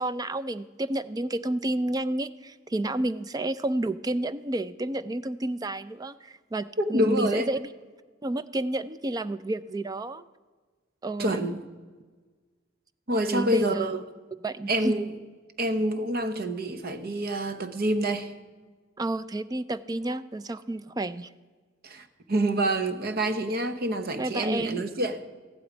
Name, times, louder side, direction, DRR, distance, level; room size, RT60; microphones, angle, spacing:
voice 1, 0.0-7.7 8.2-10.2 11.0-11.5 13.3-14.0 14.4-14.9 19.0-21.3 24.2-24.8, right 2 dB, 20° right, 0.4 m, -30 dB
voice 2, 6.8-7.5 11.2-11.6 13.1-14.0 14.7-15.1 15.6-18.3 21.8-25.2, right 1 dB, 50° right, 0.9 m, -27 dB
15.0 x 11.5 x 5.0 m
head